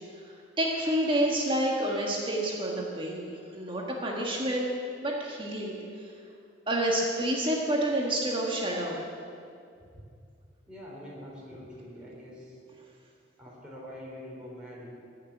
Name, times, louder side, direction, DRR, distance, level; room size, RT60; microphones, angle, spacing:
voice 1, 0.6-4.7 5.0-6.1 6.7-9.0, right 1 dB, 25° right, -2 dB, 1.6 m, -29 dB
voice 2, 10.7-12.6 13.4-14.9, equal, 5° right, -6 dB, 3.7 m, -44 dB
15.0 x 6.7 x 9.7 m, 2.4 s
head